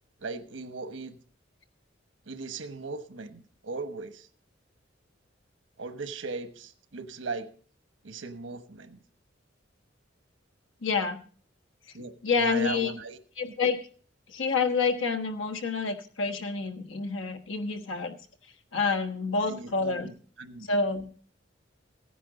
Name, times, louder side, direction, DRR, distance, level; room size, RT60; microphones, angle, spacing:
voice 1, 0.2-1.2 2.3-4.3 5.8-7.5 8.0-9.0 11.9-13.2 19.4-20.7, right 3 dB, 85° right, 10 dB, 1.1 m, -38 dB
voice 2, 10.8-11.2 12.2-12.9 13.4-13.8 14.3-18.1 18.7-20.1 20.7-21.2, left 4 dB, 90° left, 6 dB, 1.3 m, -28 dB
15.5 x 10.0 x 4.0 m, 0.44 s
head